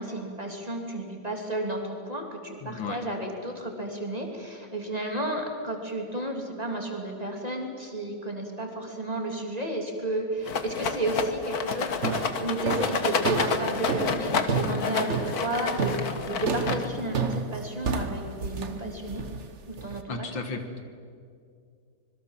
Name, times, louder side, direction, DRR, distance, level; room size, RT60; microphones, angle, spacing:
voice 1, 0.0-12.0 12.3-19.2 19.7-20.3, right 1 dB, 20° right, 1 dB, 3.1 m, -32 dB
voice 2, 2.6-3.0 20.1-20.8, left 4 dB, 70° left, 7 dB, 2.4 m, -34 dB
Rattle, 10.5-17.1, left 5 dB, 50° left, 1.7 m, -29 dB
sound 1, 11.2-11.5 12.0-20.0, right 5 dB, 40° right, 1.3 m, -31 dB
25.5 x 22.0 x 7.5 m, 2.3 s
omnidirectional pair, 2.2 m